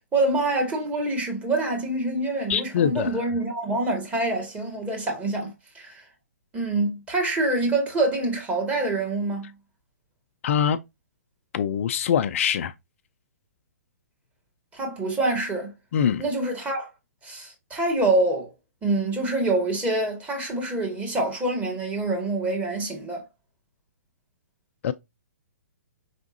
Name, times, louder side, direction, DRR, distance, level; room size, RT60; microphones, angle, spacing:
voice 1, 0.1-6.0 6.5-9.5 14.7-15.7 16.2-16.9 17.2-18.5 18.8-23.2, right 2 dB, 15° right, 1.9 m, -26 dB
voice 2, 2.5-3.2 10.4-10.8 11.5-12.7 15.9-16.2 24.8-24.9, left 8 dB, 50° left, 0.4 m, -23 dB
5.0 x 3.5 x 2.7 m
hypercardioid pair, 130°, 9 cm